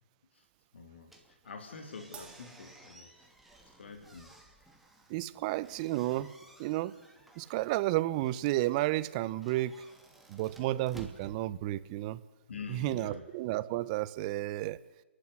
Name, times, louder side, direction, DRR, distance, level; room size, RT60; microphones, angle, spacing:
voice 1, 0.7-1.1 1.4-3.1 3.8-4.3 12.5-13.2, left 4 dB, 75° left, 4 dB, 3.2 m, -45 dB
sound 1, 1.0-12.2, right 1 dB, ahead, 2.7 m, -57 dB
Crash cymbal, 2.1-3.8, right 7 dB, 20° right, 2.0 m, -54 dB
voice 2, 5.1-6.3 6.6-7.0 7.4-9.7 10.3-12.2 12.7-14.8, right 16 dB, 40° right, 18 dB, 0.9 m, -32 dB
28.5 x 11.5 x 9.9 m, 1.1 s
hypercardioid pair, 130°, 6 cm